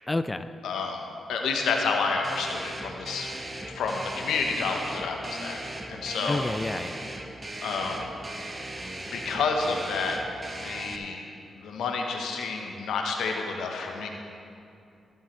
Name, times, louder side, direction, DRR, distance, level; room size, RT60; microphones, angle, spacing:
voice 1, 0.1-0.5 6.3-7.0, left 2 dB, 25° left, 10 dB, 0.4 m, -29 dB
voice 2, 0.6-1.0 1.3-3.3 3.7-5.6 5.9-6.4 7.6-8.1 9.1-10.2 10.5-11.3 11.6-14.1, left 4 dB, 80° left, 2 dB, 1.0 m, -29 dB
sound 1, 2.2-11.0, right 1 dB, 30° right, 1.1 m, -38 dB
19.5 x 7.2 x 3.2 m, 2.6 s
supercardioid pair, 50°, 0 cm